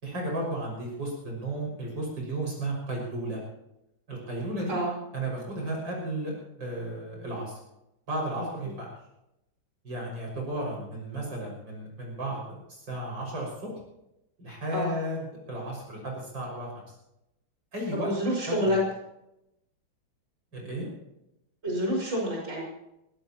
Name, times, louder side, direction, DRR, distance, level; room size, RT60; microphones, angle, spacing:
voice 1, 0.0-3.4 4.1-4.8 5.1-7.6 8.1-8.9 9.8-13.7 14.4-16.7 17.7-18.1 18.5-18.7 20.5-20.9, right 1 dB, 65° right, -2 dB, 6.8 m, -34 dB
voice 2, 17.9-18.8 21.6-22.6, equal, 35° right, -2 dB, 6.0 m, -28 dB
23.0 x 16.5 x 3.0 m, 0.86 s
omnidirectional pair, 2.1 m